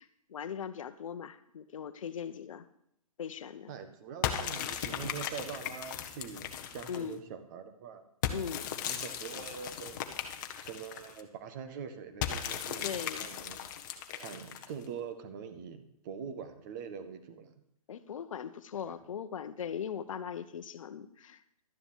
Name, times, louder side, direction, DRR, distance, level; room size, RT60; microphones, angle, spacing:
voice 1, 0.0-2.7 3.2-3.7 6.9-7.2 8.3-8.7 12.8-13.3 17.9-21.6, left 8 dB, 60° left, 11 dB, 1.0 m, -40 dB
voice 2, 3.7-8.0 8.8-10.0 10.6-13.6 14.2-17.5 18.7-18.9, right 7 dB, 30° right, 8 dB, 1.4 m, -44 dB
sound 1, 4.2-7.1 8.2-11.2 12.2-14.9, left 9 dB, 30° left, 1.1 m, -37 dB
12.0 x 7.0 x 7.3 m, 0.75 s
hypercardioid pair, 155°, 19 cm